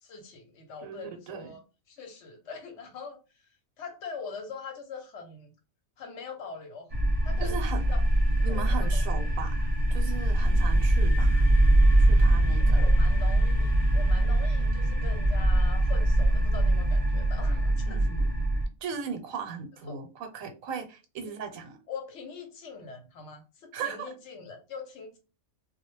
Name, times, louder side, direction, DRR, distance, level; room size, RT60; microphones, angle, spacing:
voice 1, 0.0-1.6 1.9-5.5 6.0-6.9 7.2-8.0 8.4-9.0 12.7-18.1 19.9-20.0 21.9-25.2, left 5 dB, 65° left, 4 dB, 0.9 m, -43 dB
voice 2, 0.8-1.5 7.4-7.8 8.4-11.5 12.0-12.8 17.9-18.3 18.8-21.8 23.7-24.0, right 6 dB, 85° right, 5 dB, 1.0 m, -37 dB
sound 1, 6.9-18.7, right 1 dB, 65° right, 0.3 m, -23 dB
2.2 x 2.0 x 3.0 m, 0.31 s
omnidirectional pair, 1.4 m